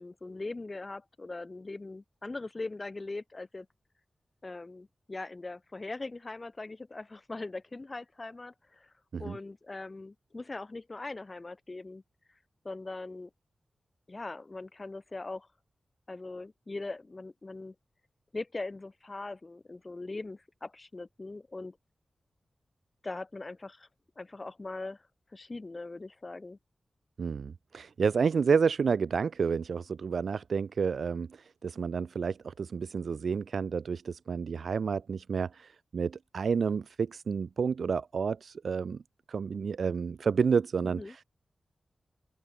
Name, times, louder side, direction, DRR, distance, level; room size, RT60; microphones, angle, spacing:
voice 1, 0.0-3.7 4.4-8.9 9.2-12.0 12.6-13.3 14.1-15.5 16.1-17.7 18.3-21.8 23.0-23.9 24.2-25.0 25.3-26.6 40.8-41.2, left 3 dB, 30° left, 2.2 m, -41 dB
voice 2, 27.2-39.0 39.3-41.2, right 5 dB, 70° right, 0.4 m, -30 dB
open air
wide cardioid pair, 150°, 0 cm